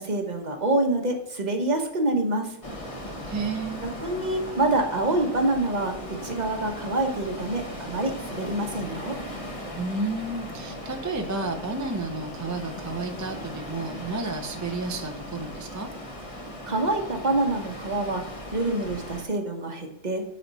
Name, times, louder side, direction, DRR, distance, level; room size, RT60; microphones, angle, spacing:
voice 1, 0.0-2.6 3.8-9.2 16.7-18.2 18.5-20.3, right 2 dB, 35° right, 3 dB, 1.1 m, -26 dB
sound 1, 2.6-19.2, equal, 30° left, 1.3 m, -38 dB
voice 2, 3.3-3.8 9.7-15.9, right 3 dB, 20° right, 4 dB, 0.5 m, -31 dB
9.2 x 4.3 x 4.1 m, 0.90 s
omnidirectional pair, 1.3 m